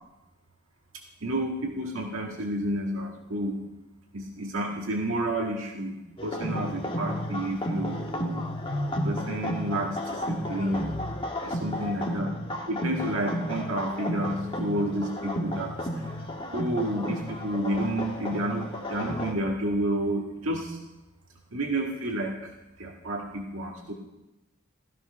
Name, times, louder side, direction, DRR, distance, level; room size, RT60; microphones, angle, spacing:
voice 1, 1.2-3.6 4.1-10.9 11.4-12.3 12.7-15.7 16.5-20.8 21.5-23.9, right 1 dB, 85° right, 0 dB, 1.8 m, -30 dB
sound 1, 6.2-19.3, equal, 25° left, 1.5 m, -33 dB
16.0 x 14.0 x 5.8 m, 1.0 s
head